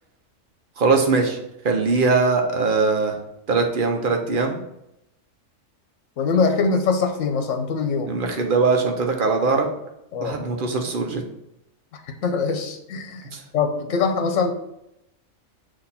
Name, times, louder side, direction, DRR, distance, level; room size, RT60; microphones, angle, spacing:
voice 1, 0.8-1.4 1.6-3.1 3.5-4.6 8.1-9.7 10.2-11.2 13.2-13.4, right 4 dB, 45° right, 3 dB, 0.9 m, -21 dB
voice 2, 6.2-8.2 10.1-10.4 12.2-13.2 13.5-14.5, left 4 dB, 70° left, 6 dB, 1.1 m, -23 dB
6.5 x 2.9 x 5.6 m, 0.83 s
omnidirectional pair, 1.4 m